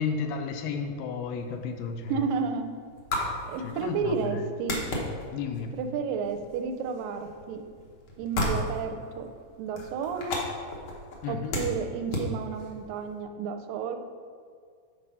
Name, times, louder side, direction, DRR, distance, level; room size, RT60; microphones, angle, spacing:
voice 1, 0.0-2.3 3.6-4.4 5.3-5.7 11.2-11.6, left 5 dB, 85° left, 5 dB, 2.3 m, -32 dB
sound 1, 1.4-13.2, left 1 dB, 65° left, 1.3 m, -36 dB
voice 2, 2.1-2.7 3.5-4.8 5.7-7.6 8.2-9.3 9.6-10.4 11.3-14.0, right 5 dB, 85° right, 6 dB, 2.2 m, -31 dB
7.9 x 4.3 x 5.5 m, 2.1 s
omnidirectional pair, 3.9 m